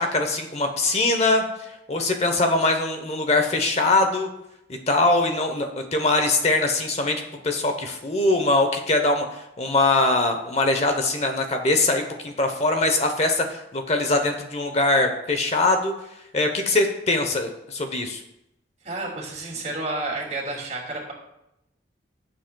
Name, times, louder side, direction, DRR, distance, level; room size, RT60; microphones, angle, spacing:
voice 1, 0.0-4.3 4.9-15.9 16.3-18.2, left 2 dB, 35° left, 5 dB, 0.9 m, -22 dB
voice 2, 18.8-21.1, right 2 dB, 40° right, -2 dB, 2.5 m, -30 dB
17.5 x 7.8 x 2.3 m, 0.85 s
head